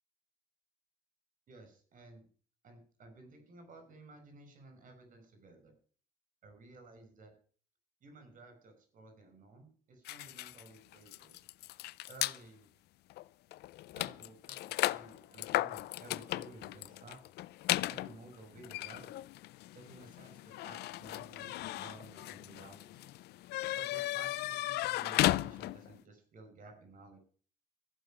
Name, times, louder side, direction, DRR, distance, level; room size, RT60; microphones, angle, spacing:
voice 1, 1.5-2.3 2.6-5.7 6.4-7.3 8.0-11.4 12.1-12.7 13.9-17.2 17.7-19.1 19.7-23.1 23.8-27.2, right 2 dB, 50° right, 7 dB, 5.4 m, -54 dB
sound 1, 10.1-12.4 13.1-13.2 13.5-26.0, left 17 dB, 75° left, 0.5 m, -36 dB
14.5 x 6.3 x 8.9 m, 0.43 s
cardioid pair, 110°, 17 cm